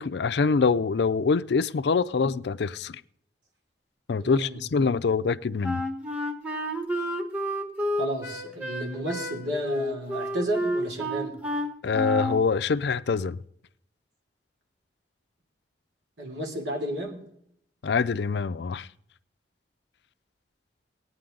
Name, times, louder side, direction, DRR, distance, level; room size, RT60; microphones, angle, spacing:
voice 1, 0.0-3.0 4.1-5.8 11.8-13.4 17.8-18.9, left 5 dB, 65° left, 0.4 m, -25 dB
voice 2, 4.2-4.6 8.0-11.3 16.2-17.2, right 1 dB, 85° right, 3.1 m, -32 dB
Wind instrument woodwind instrument, 5.6-12.4, equal, 10° right, 1.3 m, -30 dB
18.0 x 9.4 x 3.8 m
head